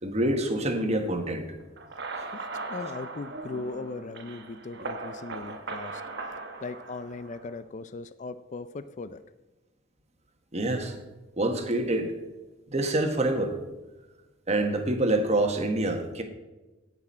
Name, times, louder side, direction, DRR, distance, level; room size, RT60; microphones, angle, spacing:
voice 1, 0.0-1.4 10.5-11.0 11.4-12.1 12.7-13.6 14.5-16.2, right 1 dB, 35° right, 5 dB, 1.4 m, -26 dB
sound 1, 1.8-7.6, right 3 dB, 60° right, 1.2 m, -39 dB
voice 2, 2.3-6.0 6.6-9.2, left 3 dB, 40° left, 12 dB, 0.4 m, -38 dB
17.0 x 6.1 x 4.3 m, 1.1 s
head